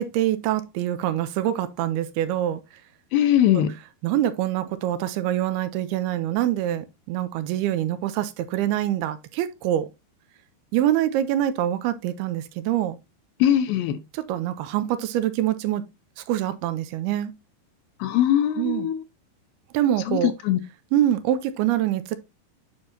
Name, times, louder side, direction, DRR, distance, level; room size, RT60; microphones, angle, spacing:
voice 1, 0.0-2.6 3.5-3.6 4.0-9.9 10.7-13.0 14.1-15.8 16.2-17.3 18.6-18.9 19.7-20.3 20.9-22.2, right 12 dB, 85° right, 2.6 m, -25 dB
voice 2, 3.1-3.7 13.4-14.0 18.0-19.0 20.1-20.2 20.5-20.6, left 11 dB, 80° left, 2.2 m, -20 dB
9.0 x 5.3 x 2.7 m
omnidirectional pair, 4.6 m